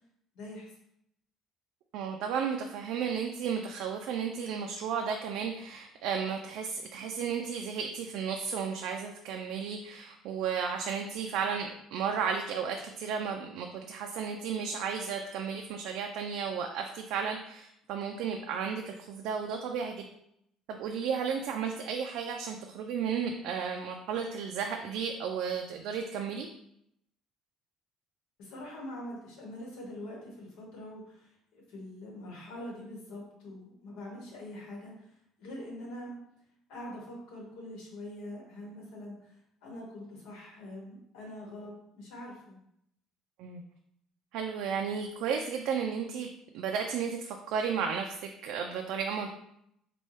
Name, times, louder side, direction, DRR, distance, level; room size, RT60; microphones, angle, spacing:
voice 1, 0.3-0.7 28.4-36.2 36.7-42.6, left 1 dB, 85° left, -1 dB, 1.2 m, -44 dB
voice 2, 1.9-20.0 20.7-26.5 43.4-43.6 44.3-46.3 46.5-49.3, right 6 dB, 75° right, 3 dB, 0.3 m, -33 dB
4.2 x 2.2 x 3.1 m, 0.75 s
cardioid pair, 130°, 0 cm